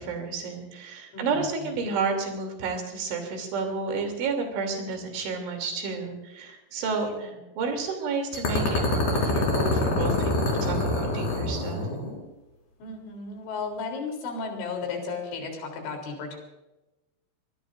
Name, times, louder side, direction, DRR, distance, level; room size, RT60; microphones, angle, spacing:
voice 1, 0.0-11.9, right 4 dB, 85° right, 4 dB, 5.5 m, -31 dB
voice 2, 1.1-1.9 7.0-7.4 12.8-16.4, left 4 dB, 85° left, 2 dB, 6.0 m, -35 dB
sound 1, 8.3-12.2, left 1 dB, 60° left, 6.7 m, -26 dB
24.0 x 20.5 x 2.6 m, 1.0 s
omnidirectional pair, 5.3 m